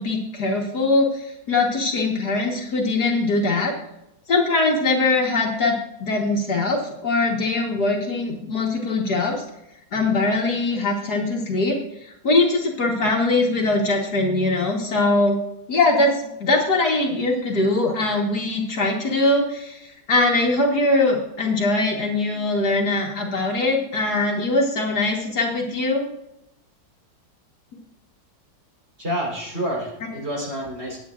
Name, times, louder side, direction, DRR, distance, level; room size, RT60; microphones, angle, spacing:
voice 1, 0.0-3.7 4.3-9.4 9.9-11.8 12.0-15.4 15.7-26.1, left 2 dB, 55° left, 0 dB, 2.0 m, -22 dB
voice 2, 29.0-31.0, equal, 35° right, -3 dB, 4.3 m, -28 dB
21.0 x 8.6 x 2.5 m, 0.85 s
omnidirectional pair, 2.0 m